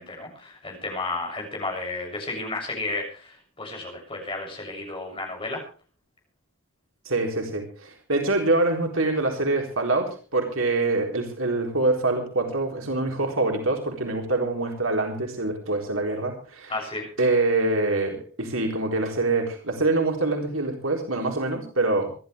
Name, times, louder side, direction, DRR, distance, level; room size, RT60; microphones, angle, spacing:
voice 1, 0.0-5.6 16.7-17.1, left 2 dB, 25° left, 1 dB, 7.1 m, -32 dB
voice 2, 7.1-16.7 17.2-22.1, right 2 dB, 85° right, 2 dB, 4.1 m, -25 dB
26.0 x 12.0 x 3.4 m, 0.37 s
head